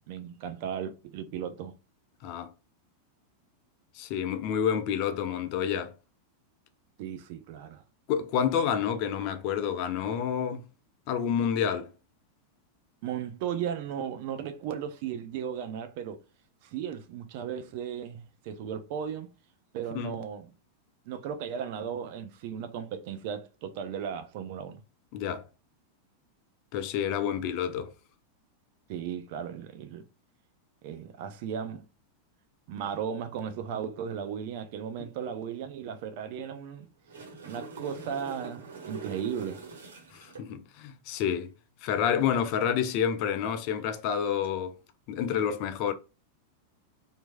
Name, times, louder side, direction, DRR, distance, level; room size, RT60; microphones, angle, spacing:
voice 1, 0.1-1.7 7.0-7.8 13.0-16.2 16.6-19.3 19.7-20.5 21.0-24.8 28.9-30.0 30.8-31.9 32.7-36.9 37.4-39.6, right 8 dB, 45° right, 0.7 m, -36 dB
voice 2, 4.0-5.9 8.1-10.6 11.1-11.9 19.9-20.1 25.1-25.4 26.7-27.9 35.0-35.1 40.1-41.5 41.8-44.8 45.1-45.9, left 8 dB, 45° left, 0.5 m, -29 dB
sound 1, 36.8-40.5 44.3-44.5, right 4 dB, 65° right, 1.3 m, -43 dB
4.5 x 2.8 x 2.3 m
figure-of-eight pair, 90°, 0 cm